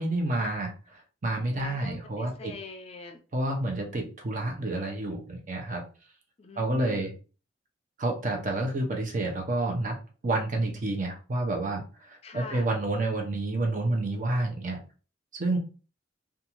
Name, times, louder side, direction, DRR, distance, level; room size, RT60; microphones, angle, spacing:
voice 1, 0.0-2.5 3.3-5.8 6.6-7.1 8.0-10.0 10.2-14.8 15.3-15.6, right 2 dB, 45° right, 1 dB, 0.6 m, -29 dB
voice 2, 1.6-3.2 6.4-7.1 12.2-12.7, left 3 dB, 35° left, 5 dB, 0.4 m, -42 dB
2.6 x 2.3 x 2.9 m, 0.37 s
head